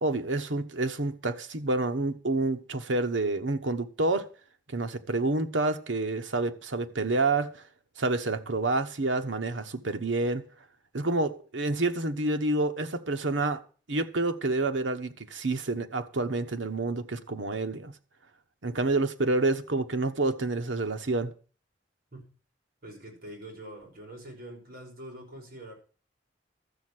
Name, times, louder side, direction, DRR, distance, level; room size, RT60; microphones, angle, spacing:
voice 1, 0.0-4.3 4.7-7.6 8.0-10.4 10.9-13.6 13.9-17.9 18.6-21.3, right 2 dB, 80° right, 1.1 m, -28 dB
voice 2, 22.8-25.7, right 1 dB, 55° right, 5.6 m, -44 dB
13.0 x 7.6 x 6.2 m
head